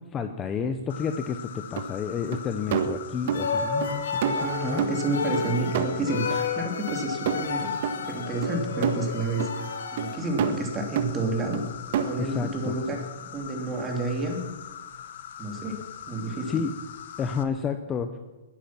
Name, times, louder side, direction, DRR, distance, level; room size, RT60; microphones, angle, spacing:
voice 1, 0.1-4.8 12.2-12.7 16.5-16.7 17.2-18.1, left 6 dB, 20° left, 8 dB, 0.9 m, -30 dB
Insect, 0.9-17.4, left 10 dB, 60° left, 1.3 m, -42 dB
sound 1, 1.8-1.9 2.3-2.4 2.7-3.5 3.8-3.9 4.2-5.5 5.7-6.5 6.9-7.0 7.3-7.5 7.8-8.0 8.4-9.0 9.4-9.5 10.0-10.1 10.4-10.7 11.0-11.1 11.5-11.6 11.9-12.3, right 8 dB, 50° right, 1.5 m, -28 dB
sound 2, 3.3-10.2, left 5 dB, 75° left, 2.1 m, -31 dB
voice 2, 4.3-7.7 8.1-11.6 11.9-14.4 15.4-15.8 16.1-16.6, right 2 dB, 20° right, 2 dB, 2.9 m, -30 dB
21.0 x 10.5 x 6.0 m, 1.1 s
hypercardioid pair, 150°, 0 cm